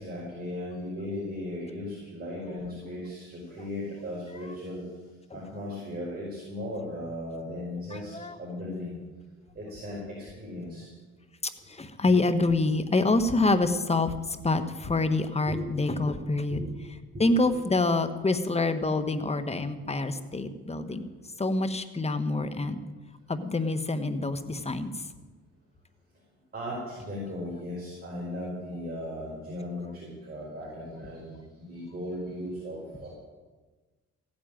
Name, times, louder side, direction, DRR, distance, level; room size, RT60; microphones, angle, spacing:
voice 1, 0.0-4.9 5.3-8.1 8.4-9.0 9.6-10.9 15.5-15.6 16.5-16.7 17.1-17.2 26.5-33.1, left 1 dB, 30° right, -4 dB, 5.3 m, -37 dB
voice 2, 7.9-8.4 11.7-16.6 17.2-21.1 21.4-22.8 23.3-25.1, left 2 dB, 20° left, 10 dB, 1.3 m, -26 dB
15.5 x 8.9 x 9.2 m, 1.3 s
cardioid pair, 90°, 30 cm